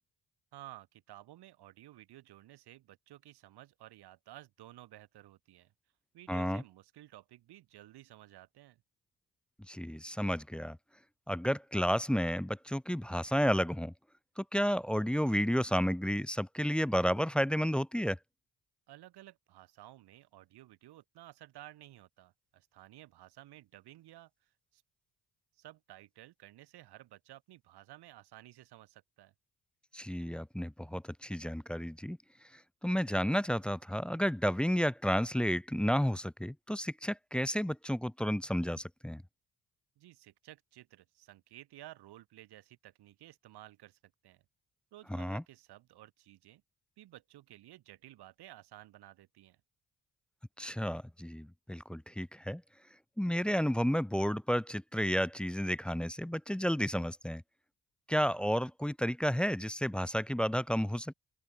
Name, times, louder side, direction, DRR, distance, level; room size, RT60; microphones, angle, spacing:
voice 1, 0.5-5.7 6.1-8.8 18.9-24.8 25.6-29.3 40.0-44.4 44.9-46.6 47.0-49.6, right 15 dB, 75° right, 4.3 m, -54 dB
voice 2, 6.3-6.6 9.7-10.8 11.3-13.9 14.4-18.2 29.9-32.2 32.5-39.2 45.1-45.4 50.6-52.6 53.2-57.4 58.1-61.1, equal, 5° left, 0.4 m, -31 dB
open air
supercardioid pair, 55°, 39 cm